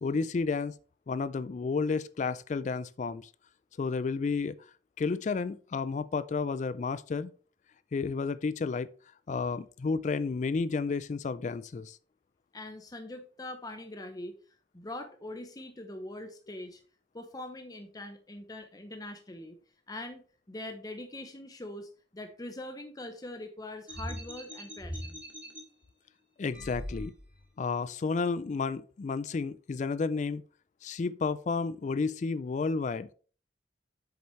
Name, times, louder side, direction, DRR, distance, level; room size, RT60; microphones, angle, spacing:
voice 1, 0.0-0.7 1.1-3.3 3.8-4.6 5.0-7.3 7.9-8.9 9.3-12.0 26.4-27.1 27.6-30.4 30.8-33.1, left 4 dB, 40° left, 0.3 m, -31 dB
voice 2, 12.5-14.3 14.7-16.8 17.1-19.6 19.9-25.2, left 1 dB, 20° left, 0.7 m, -42 dB
sound 1, 23.9-25.6 26.5-27.4, equal, 10° right, 2.5 m, -40 dB
8.0 x 7.0 x 3.2 m
head